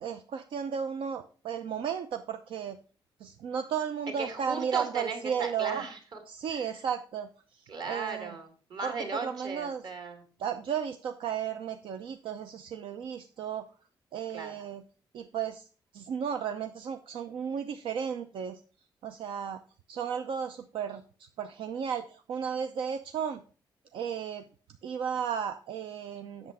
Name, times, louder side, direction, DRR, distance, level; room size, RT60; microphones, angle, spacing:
voice 1, 0.0-2.8 3.2-5.8 6.3-7.3 7.8-8.4 8.8-9.8 10.4-13.7 14.1-14.8 15.1-15.6 15.9-18.6 19.0-19.6 19.9-21.0 21.4-23.4 23.9-24.4 24.8-26.5, right 7 dB, 90° right, 7 dB, 0.7 m, -34 dB
voice 2, 4.2-6.2 6.5-6.8 7.7-10.2 14.3-14.6, right 4 dB, 55° right, 5 dB, 2.2 m, -37 dB
8.2 x 6.9 x 4.9 m, 0.37 s
wide cardioid pair, 165°, 9 cm